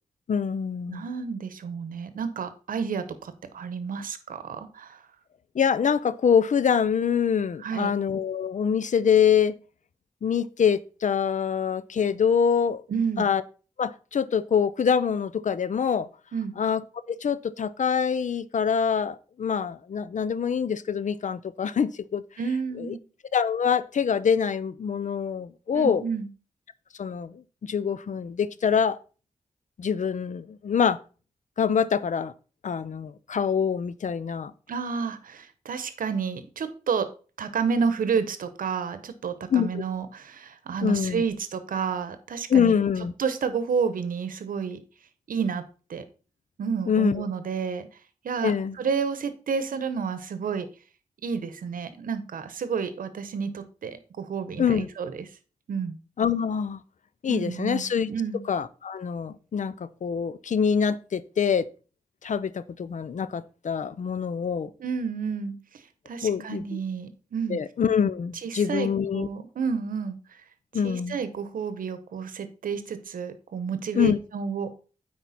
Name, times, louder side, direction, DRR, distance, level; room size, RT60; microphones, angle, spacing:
voice 1, 0.3-1.1 5.5-9.6 10.2-12.8 13.2-13.4 13.8-16.1 16.6-16.8 17.1-22.2 22.8-22.9 23.3-26.0 27.0-29.0 29.8-31.0 31.6-32.3 32.6-34.5 39.5-39.8 40.8-41.2 42.5-43.1 46.9-47.2 48.4-48.8 54.6-54.9 56.2-56.8 57.2-58.1 58.5-61.7 62.2-64.7 66.2-66.8 67.5-69.3 70.7-71.2 73.9-74.2, left 7 dB, 65° left, 0.5 m, -25 dB
voice 2, 0.9-5.0 7.6-7.9 12.9-13.3 16.3-16.5 22.4-23.0 25.7-26.3 34.7-37.1 37.4-42.7 43.2-44.8 45.3-45.6 45.9-46.0 46.6-47.9 48.2-48.5 48.8-50.7 51.2-55.1 55.7-56.0 57.3-57.8 58.1-58.4 64.8-67.6 68.4-70.4 70.8-74.8, right 6 dB, 90° right, 0.8 m, -30 dB
9.2 x 4.4 x 4.1 m
cardioid pair, 55°, 14 cm